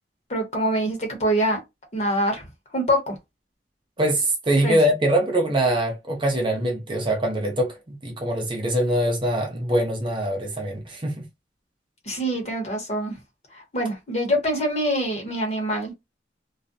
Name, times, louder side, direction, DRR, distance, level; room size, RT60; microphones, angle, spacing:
voice 1, 0.3-1.6 1.9-2.4 2.7-3.1 4.6-4.8 12.1-13.2 13.5-15.9, equal, 40° left, 1.0 m, -24 dB
voice 2, 4.0-11.1, right 1 dB, 30° right, 0.7 m, -23 dB
2.4 x 2.2 x 2.6 m
head